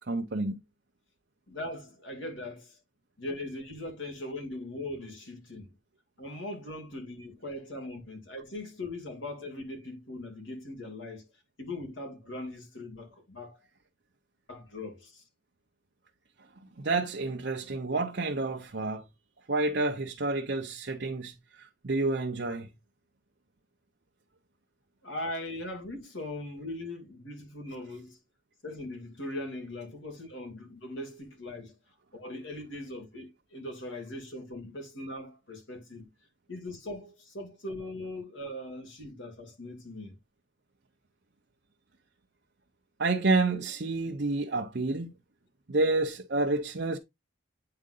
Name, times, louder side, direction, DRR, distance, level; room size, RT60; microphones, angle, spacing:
voice 1, 0.1-0.6 16.8-19.0 19.5-22.7 43.0-45.1 45.7-47.0, right 3 dB, 60° right, 0.7 m, -29 dB
voice 2, 1.5-2.8 3.2-5.7 6.2-11.3 11.6-13.6 14.5-15.2 25.0-28.2 28.6-31.8 32.1-36.1 36.5-40.2, left 1 dB, 75° left, 2.3 m, -40 dB
8.8 x 3.8 x 3.8 m
head